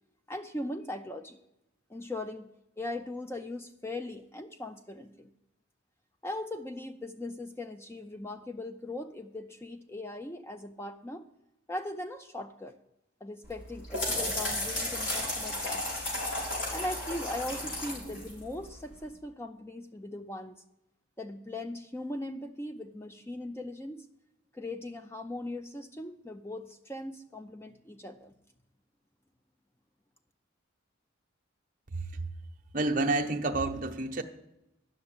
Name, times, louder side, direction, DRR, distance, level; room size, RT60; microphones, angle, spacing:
voice 1, 0.3-1.4 1.9-2.5 2.8-5.3 6.2-11.3 11.7-12.8 13.2-15.9 16.7-20.5 21.2-24.1 24.5-28.3, left 1 dB, 10° left, 0.5 m, -39 dB
sound 1, 13.4-19.0, left 1 dB, 70° left, 4.5 m, -34 dB
voice 2, 32.7-34.2, right 2 dB, 40° right, 1.0 m, -29 dB
11.0 x 6.4 x 8.8 m
head